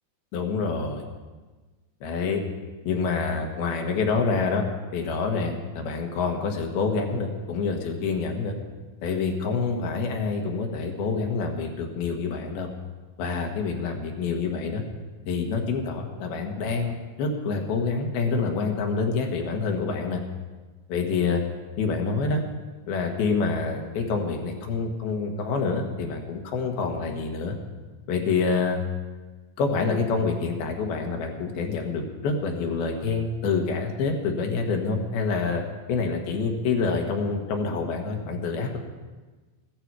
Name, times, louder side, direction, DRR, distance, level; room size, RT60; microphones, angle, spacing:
voice 1, 0.3-1.0 2.0-2.4 2.8-4.6 4.9-8.6 9.0-12.7 13.2-14.8 15.3-20.2 20.9-21.4 21.8-22.4 22.9-27.6 28.1-28.8 29.6-35.6 35.9-38.8, left 4 dB, 80° left, 3 dB, 3.4 m, -27 dB
15.0 x 13.5 x 4.7 m, 1.3 s
omnidirectional pair, 4.3 m